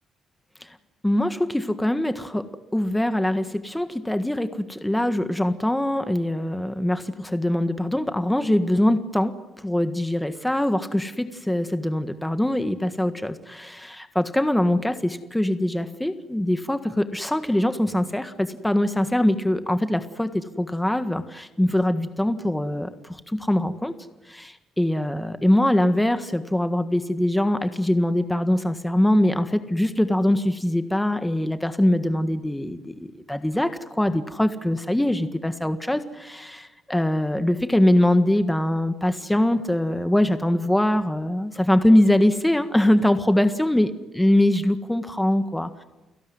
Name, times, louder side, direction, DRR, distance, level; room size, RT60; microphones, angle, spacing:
voice 1, 1.0-9.4 9.6-23.9 24.3-43.9 44.1-45.8, left 1 dB, 5° left, 9 dB, 1.6 m, -23 dB
30.0 x 17.5 x 9.6 m, 1.1 s
cardioid pair, 90°, 0 cm